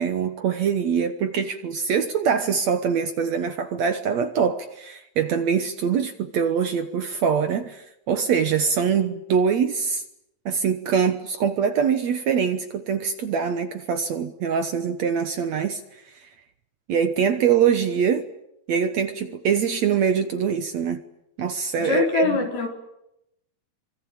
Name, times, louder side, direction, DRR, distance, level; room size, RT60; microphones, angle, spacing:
voice 1, 0.0-10.0 10.5-15.8 16.9-18.3 18.7-21.0 21.4-22.4, right 7 dB, 65° right, 1.9 m, -23 dB
voice 2, 21.8-22.7, left 5 dB, 80° left, 6.1 m, -23 dB
25.5 x 25.0 x 8.7 m
omnidirectional pair, 4.3 m